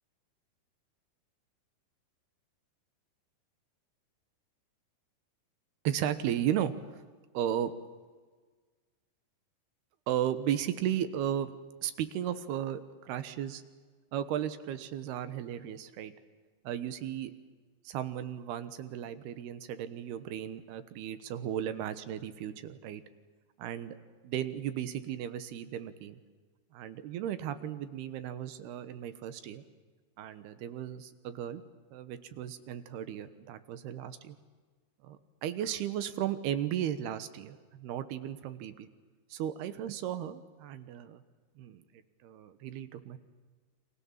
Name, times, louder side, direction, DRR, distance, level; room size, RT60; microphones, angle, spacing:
voice 1, 5.8-7.0 7.3-7.7 10.1-11.5 11.8-13.6 14.1-16.1 16.6-17.3 17.8-23.0 23.6-24.0 24.2-26.2 26.7-29.6 30.2-31.6 31.9-34.4 35.0-38.9 39.3-41.2 41.6-41.8 42.2-43.2, right 10 dB, 80° right, 12 dB, 3.2 m, -35 dB
30.0 x 25.0 x 7.4 m, 1.4 s
omnidirectional pair, 4.6 m